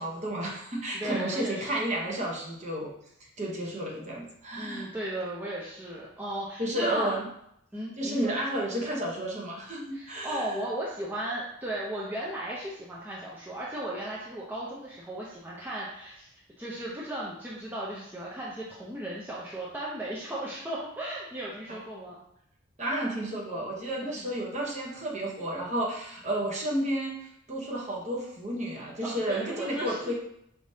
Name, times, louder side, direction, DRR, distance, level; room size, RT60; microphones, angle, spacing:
voice 1, 0.0-2.9 3.4-4.9 6.6-7.3 8.0-10.5 21.7-21.8 22.8-30.1, right 1 dB, 35° right, -2 dB, 0.8 m, -32 dB
voice 2, 0.9-1.7 4.6-7.2 7.7-8.3 9.9-22.2 24.0-24.3 29.0-30.0, right 1 dB, 10° right, -6 dB, 0.5 m, -36 dB
4.8 x 3.3 x 2.7 m, 0.75 s
head